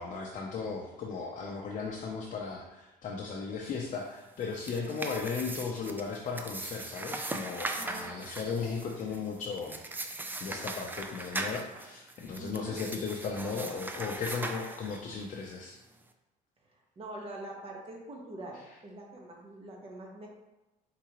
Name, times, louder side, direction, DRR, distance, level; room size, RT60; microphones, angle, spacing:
voice 1, 0.0-10.1 10.4-15.8, left 5 dB, 45° left, 0 dB, 0.6 m, -36 dB
sound 1, 4.4-15.3, right 2 dB, 10° right, 0.4 m, -40 dB
voice 2, 4.7-5.1 7.7-8.1 12.4-12.8 16.6-20.3, right 1 dB, 35° right, -1 dB, 1.2 m, -44 dB
4.8 x 3.7 x 3.0 m, 1.0 s
cardioid pair, 110°, 17 cm